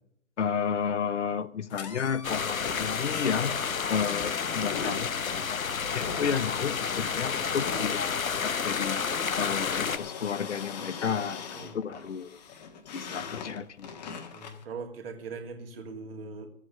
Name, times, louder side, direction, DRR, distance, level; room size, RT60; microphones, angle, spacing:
voice 1, 0.4-3.5 3.9-9.0 9.4-12.3 12.9-13.9, left 7 dB, 60° left, 0.9 m, -32 dB
sound 1, 1.7-14.6, left 6 dB, 30° left, 1.5 m, -42 dB
sound 2, 2.2-10.0, left 6 dB, 90° left, 1.0 m, -30 dB
voice 2, 14.3-16.5, right 4 dB, 45° right, 2.5 m, -41 dB
13.0 x 8.4 x 6.6 m
hypercardioid pair, 150°, 40 cm